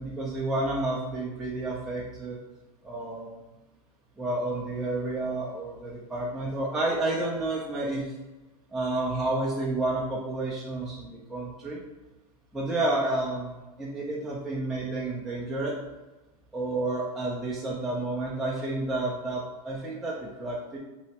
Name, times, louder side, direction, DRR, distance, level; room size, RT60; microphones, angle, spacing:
voice 1, 0.0-2.4 2.8-3.4 4.2-8.1 8.7-11.8 12.5-15.7 16.5-20.8, right 2 dB, ahead, -7 dB, 0.4 m, -30 dB
3.1 x 2.8 x 2.8 m, 1.1 s
supercardioid pair, 140°, 19 cm